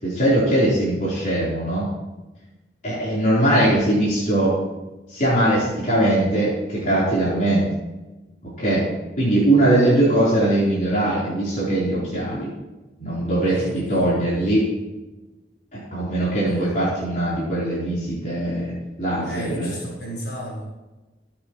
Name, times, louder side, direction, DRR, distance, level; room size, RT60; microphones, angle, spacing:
voice 1, 0.0-1.9 2.8-4.6 5.1-7.7 8.4-8.9 9.2-12.5 13.0-14.7 15.7-18.7 19.0-19.7, right 1 dB, 45° left, -9 dB, 4.2 m, -21 dB
voice 2, 13.4-14.2 16.5-16.8 19.2-20.6, equal, 75° left, -4 dB, 4.8 m, -34 dB
22.5 x 8.7 x 3.2 m, 1.1 s
head